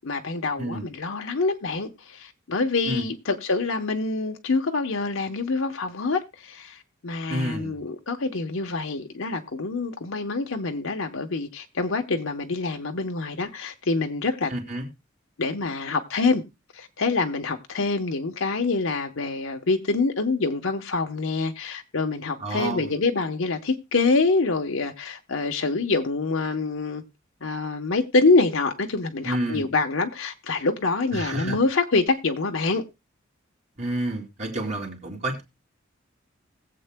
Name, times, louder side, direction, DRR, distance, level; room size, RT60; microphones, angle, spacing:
voice 1, 0.0-6.8 7.0-14.5 15.4-16.4 16.7-27.0 27.4-32.8, left 3 dB, 75° left, 1.0 m, -26 dB
voice 2, 0.5-0.9 2.9-3.0 7.3-7.9 14.5-14.9 22.4-22.9 29.2-29.7 31.1-31.6 33.8-35.4, right 1 dB, 35° right, 2.7 m, -29 dB
20.0 x 7.8 x 2.2 m
head